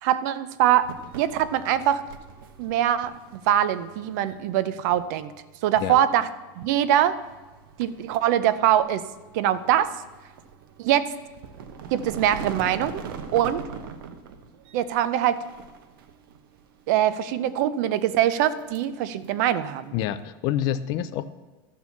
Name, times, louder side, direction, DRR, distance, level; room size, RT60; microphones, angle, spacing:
voice 1, 0.0-2.0 2.6-5.3 5.6-6.3 6.6-7.2 7.8-9.0 9.3-10.0 10.8-11.1 11.9-13.0 13.3-13.6 14.7-15.4 16.9-20.0, right 11 dB, 50° right, 14 dB, 0.5 m, -23 dB
sound 1, 0.8-20.2, right 6 dB, 75° right, 0.9 m, -43 dB
voice 2, 19.9-21.3, left 11 dB, 35° left, 13 dB, 0.4 m, -27 dB
12.5 x 4.4 x 7.1 m, 1.2 s
supercardioid pair, 170°, 12 cm